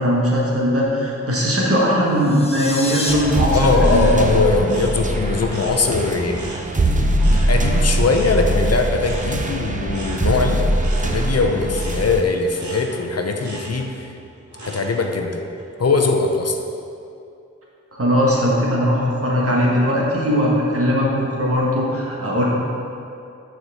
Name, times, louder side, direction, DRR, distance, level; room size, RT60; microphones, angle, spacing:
voice 1, 0.0-4.2 17.9-22.4, equal, 50° right, -4 dB, 1.6 m, -19 dB
sound 1, 2.1-3.1, left 2 dB, 20° left, 0.7 m, -29 dB
sound 2, 3.0-6.0 6.3-15.2 15.6-16.0, right 1 dB, 80° right, 1.2 m, -38 dB
sound 3, 3.1-12.2, right 1 dB, 25° right, 0.6 m, -21 dB
voice 2, 3.5-6.5 7.2-14.1 14.6-15.4 15.8-16.6, left 3 dB, 55° left, 4 dB, 0.7 m, -21 dB
6.3 x 4.4 x 6.3 m, 2.6 s
wide cardioid pair, 70°, 29 cm